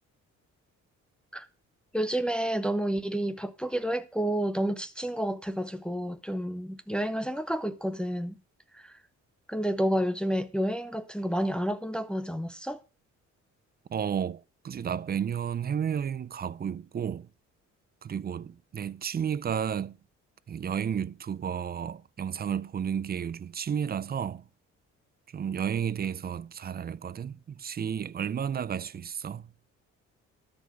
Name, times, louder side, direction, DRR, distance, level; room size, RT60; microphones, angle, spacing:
voice 1, 1.9-8.3 8.7-8.9 9.5-12.8, equal, 5° left, 0.7 m, -30 dB
voice 2, 13.9-17.3 18.0-20.0 20.5-24.4 25.3-29.5, right 8 dB, 30° right, 0.5 m, -32 dB
12.5 x 5.3 x 5.9 m
cardioid pair, 90°, 30 cm